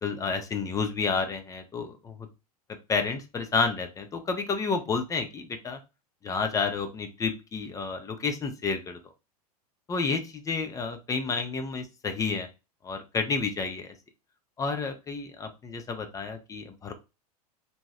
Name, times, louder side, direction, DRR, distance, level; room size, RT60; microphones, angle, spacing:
voice 1, 0.0-2.3 2.9-5.8 6.2-9.0 9.9-12.5 12.8-13.9 14.6-16.9, left 4 dB, 15° left, 6 dB, 0.5 m, -30 dB
2.7 x 2.2 x 3.1 m, 0.27 s
figure-of-eight pair, 95°, 20 cm